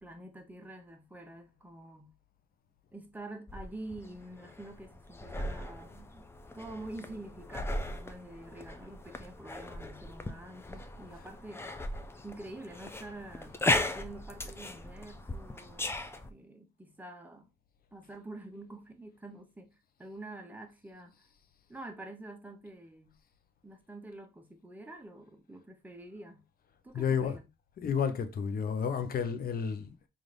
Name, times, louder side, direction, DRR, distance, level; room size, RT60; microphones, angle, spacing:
voice 1, 0.0-2.1 2.9-6.3 6.5-11.7 12.2-13.6 13.9-16.0 16.3-17.5 17.9-19.7 20.0-21.3 21.7-23.2 23.6-26.4 26.8-27.5, right 2 dB, 10° right, 0.7 m, -47 dB
sound 1, 3.5-16.3, left 2 dB, 10° left, 0.4 m, -37 dB
voice 2, 26.9-27.3 27.8-30.1, left 7 dB, 50° left, 0.6 m, -31 dB
3.9 x 2.5 x 3.2 m
cardioid pair, 90°, 20 cm